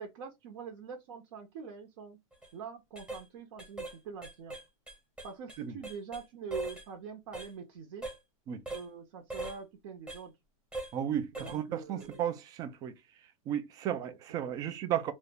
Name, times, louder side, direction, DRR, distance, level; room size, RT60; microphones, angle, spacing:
voice 1, 0.0-2.2 2.5-4.6 5.2-8.1 8.7-10.3 11.3-12.3 13.9-14.2 14.5-14.7, right 6 dB, 55° right, 0.7 m, -44 dB
sound 1, 2.3-2.5 2.9-3.2 3.6-4.0 4.2-6.2 6.5-6.9 7.3-7.5 8.0-8.2 8.7-8.9 9.3-9.6 10.1-10.2 10.7-10.9 11.3-11.6 12.0-12.2, right 2 dB, 5° right, 0.9 m, -40 dB
voice 2, 10.9-12.9 13.5-15.1, right 10 dB, 20° right, 0.3 m, -34 dB
2.4 x 2.0 x 3.4 m
hypercardioid pair, 145°, 18 cm